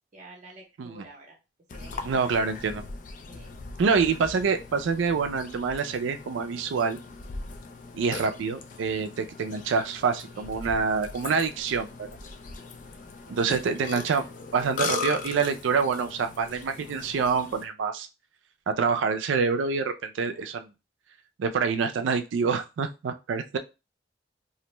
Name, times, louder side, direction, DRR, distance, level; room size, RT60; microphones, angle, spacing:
voice 1, 0.1-1.4 1.7-2.5 3.3-3.5 10.3-10.9 12.6-14.3 20.2-20.5, right 2 dB, 40° right, 0 dB, 0.6 m, -51 dB
Burping eructation, 1.7-17.6, left 4 dB, 45° left, 0.3 m, -39 dB
voice 2, 2.0-2.8 3.8-7.0 7.9-12.2 13.3-14.2 14.5-18.1 18.7-20.7 21.4-23.6, right 5 dB, 85° right, 7 dB, 0.4 m, -26 dB
2.5 x 2.1 x 2.9 m, 0.28 s
head